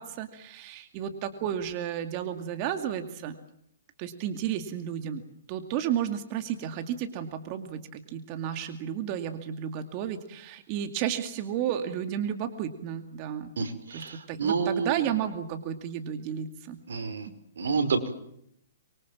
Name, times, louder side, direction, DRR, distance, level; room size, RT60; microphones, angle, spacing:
voice 1, 0.0-3.4 4.0-5.2 5.5-13.5 13.9-16.8, right 9 dB, 30° right, 8 dB, 2.3 m, -32 dB
voice 2, 13.6-15.1 16.9-17.3 17.6-18.1, right 5 dB, 80° right, 8 dB, 5.1 m, -29 dB
25.5 x 23.5 x 7.5 m, 0.72 s
hypercardioid pair, 155°, 0 cm